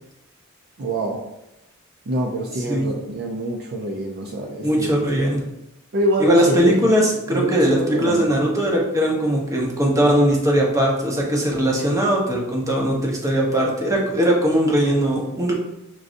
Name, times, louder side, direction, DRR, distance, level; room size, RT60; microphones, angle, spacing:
voice 1, 0.8-1.2 2.1-5.3 5.9-6.9 7.3-8.3, right 1 dB, 50° right, 1 dB, 0.5 m, -25 dB
voice 2, 4.6-5.4 6.2-15.5, equal, 15° right, -2 dB, 0.8 m, -19 dB
6.0 x 2.6 x 2.5 m, 0.89 s
head